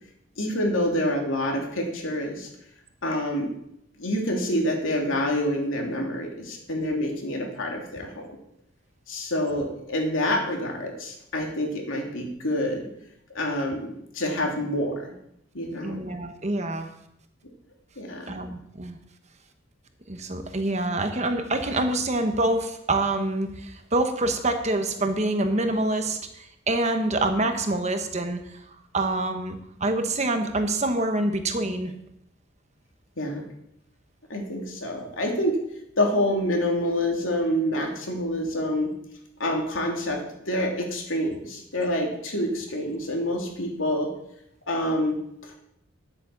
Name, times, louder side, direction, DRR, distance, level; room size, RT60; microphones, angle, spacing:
voice 1, 0.4-2.5 3.0-3.5 4.0-8.2 9.1-12.9 13.3-13.9 14.1-15.1 15.5-16.0 18.0-18.4 33.2-33.4 34.3-35.6 36.0-38.9 39.4-40.2 40.5-44.1 44.7-45.5, left 1 dB, 70° left, 1 dB, 3.1 m, -27 dB
voice 2, 15.8-16.9 18.3-19.0 20.1-28.4 28.9-31.9, right 2 dB, 35° right, 6 dB, 1.2 m, -26 dB
10.5 x 8.6 x 7.1 m, 0.78 s
head